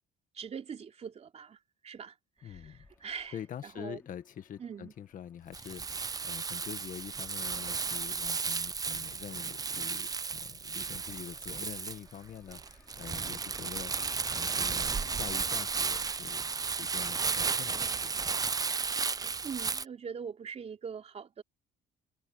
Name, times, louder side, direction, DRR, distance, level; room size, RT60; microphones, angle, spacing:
voice 1, 0.3-3.3 3.6-4.0 4.6-4.9 19.4-21.4, right 6 dB, 40° right, 3.4 m, -42 dB
voice 2, 2.4-2.9 3.3-18.2, left 9 dB, 50° left, 1.7 m, -45 dB
sound 1, 2.4-16.0, left 2 dB, 10° left, 6.6 m, -64 dB
Crumpling crinkling, 5.5-19.8, right 5 dB, 20° right, 0.6 m, -34 dB
cardioid pair, 110°, 17 cm